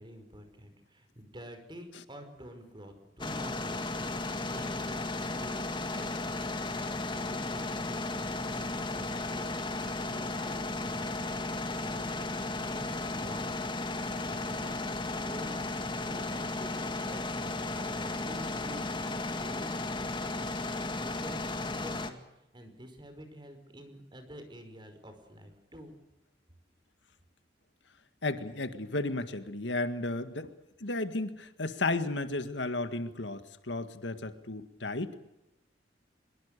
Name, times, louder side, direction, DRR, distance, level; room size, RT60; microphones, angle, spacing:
voice 1, 0.0-4.1 4.5-6.3 6.7-8.7 8.9-13.7 14.3-14.8 15.2-15.7 16.0-22.2 22.5-26.0, equal, 25° right, 7 dB, 5.3 m, -49 dB
sound 1, 3.2-22.1, left 2 dB, 25° left, 2.1 m, -35 dB
voice 2, 28.2-30.5 30.8-35.1, left 2 dB, 80° left, 10 dB, 1.9 m, -33 dB
24.5 x 23.0 x 6.8 m, 0.88 s
head